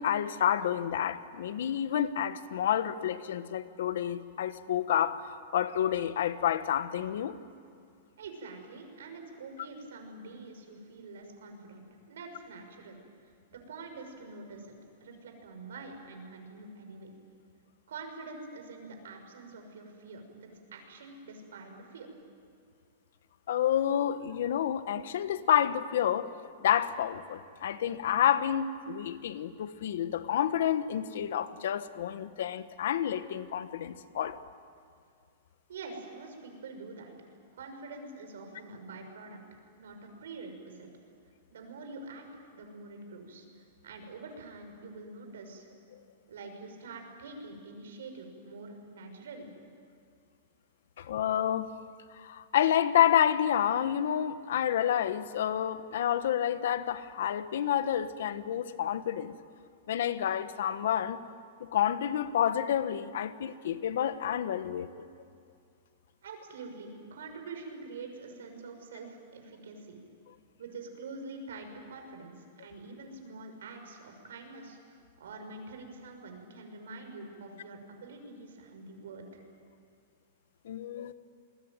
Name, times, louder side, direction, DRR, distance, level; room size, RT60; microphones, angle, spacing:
voice 1, 0.0-7.4 23.5-26.3 26.6-34.4 51.0-51.7 52.2-59.3 59.9-61.2 61.6-65.0 80.6-81.1, left 10 dB, 60° left, 1.3 m, -29 dB
voice 2, 8.2-13.0 13.5-14.7 15.0-17.1 17.9-22.1 35.7-37.1 37.5-40.9 41.5-42.2 42.5-45.7 46.3-49.5 66.2-70.0 70.6-79.4, right 3 dB, 90° right, 6.2 m, -46 dB
28.0 x 21.5 x 9.1 m
supercardioid pair, 180°, 0 cm